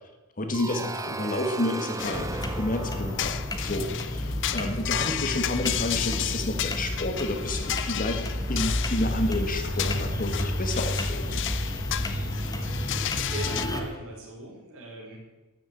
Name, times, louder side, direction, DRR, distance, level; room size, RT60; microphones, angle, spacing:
voice 1, 0.4-3.3 3.6-8.2 8.5-11.4, left 1 dB, 40° left, 5 dB, 1.6 m, -30 dB
sound 1, 0.5-5.2, right 3 dB, 15° right, 0.5 m, -37 dB
sound 2, 2.0-13.7, left 11 dB, 55° left, 0.5 m, -33 dB
sound 3, 2.1-13.8, left 1 dB, 15° left, 1.2 m, -31 dB
voice 2, 13.2-15.2, right 1 dB, 65° right, -2 dB, 4.7 m, -39 dB
13.0 x 7.0 x 8.5 m, 1.2 s
head